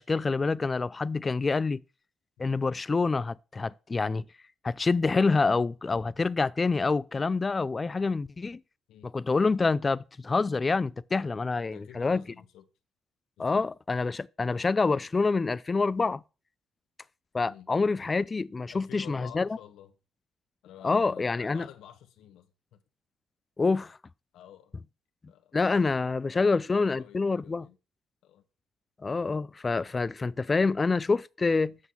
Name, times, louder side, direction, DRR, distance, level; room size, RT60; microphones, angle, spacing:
voice 1, 0.0-1.8 2.4-4.2 4.6-8.6 9.0-12.2 13.4-16.2 17.3-19.5 20.8-21.6 23.6-24.0 25.5-27.7 29.0-31.8, left 4 dB, 30° left, 0.4 m, -27 dB
voice 2, 11.5-12.6 13.4-13.6 17.5-17.7 18.7-19.9 20.6-22.5 22.7-22.8 24.3-24.8 25.3-25.5 26.3-27.8 28.2-28.4, left 11 dB, 85° left, 1.1 m, -50 dB
8.1 x 6.3 x 5.5 m
cardioid pair, 90°, 0 cm